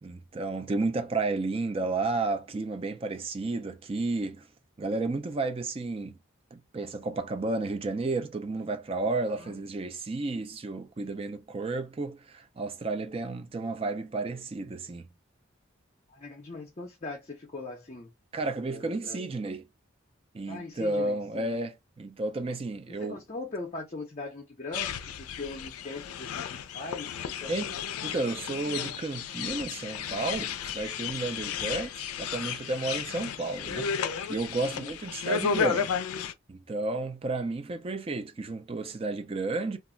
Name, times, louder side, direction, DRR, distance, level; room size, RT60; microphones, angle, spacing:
voice 1, 0.0-4.5 4.8-6.1 6.5-15.1 18.3-19.6 20.3-23.2 27.5-27.7 28.0-36.0 36.5-39.8, right 3 dB, 25° right, 0.3 m, -32 dB
voice 2, 16.1-18.1 18.7-19.3 20.5-21.6 22.9-27.7 34.7-34.9, left 3 dB, 30° left, 0.5 m, -41 dB
sound 1, 24.7-36.3, left 7 dB, 85° left, 0.4 m, -33 dB
2.4 x 2.1 x 3.7 m
head